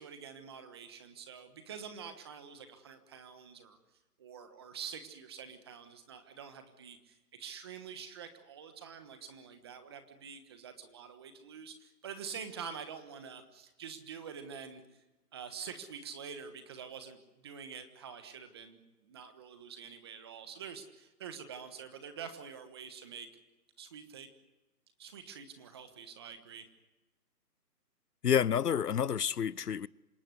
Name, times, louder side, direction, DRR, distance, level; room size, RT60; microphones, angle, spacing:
voice 1, 0.0-3.8 4.2-14.8 15.3-23.3 23.8-24.3 25.0-26.6, right 7 dB, 15° right, 1.3 m, -46 dB
voice 2, 28.2-29.9, left 8 dB, 75° left, 0.8 m, -29 dB
27.0 x 18.0 x 9.7 m
hypercardioid pair, 165°, 48 cm